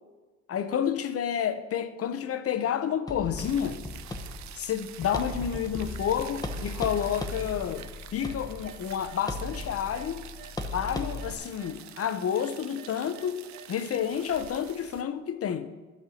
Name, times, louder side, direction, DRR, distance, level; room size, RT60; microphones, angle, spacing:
voice 1, 0.5-3.8 4.5-7.8 8.1-10.2 10.7-13.4 13.7-15.7, left 8 dB, 50° left, 0.7 m, -30 dB
sound 1, 3.1-11.3, left 2 dB, 10° left, 0.9 m, -37 dB
sound 2, 3.4-15.0, right 11 dB, 65° right, 0.6 m, -47 dB
sound 3, 5.1-5.7 6.0-6.6 6.9-10.1 10.4-14.4, right 9 dB, 45° right, 2.3 m, -51 dB
11.5 x 4.4 x 6.3 m
cardioid pair, 90°, 30 cm